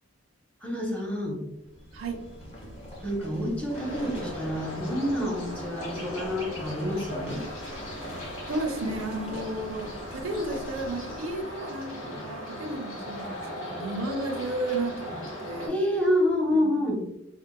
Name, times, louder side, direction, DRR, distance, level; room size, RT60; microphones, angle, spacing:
voice 1, 0.6-1.4 3.0-7.4 11.9-12.2 15.7-17.1, left 1 dB, 5° left, -2 dB, 0.7 m, -28 dB
sound 1, 1.6-11.6, equal, 35° left, 1.3 m, -43 dB
sound 2, 3.7-15.7, equal, 70° left, 1.2 m, -38 dB
voice 2, 8.5-11.9 12.2-15.7 16.5-16.7, right 2 dB, 75° right, 2 dB, 0.6 m, -33 dB
4.4 x 2.2 x 2.2 m, 0.83 s
head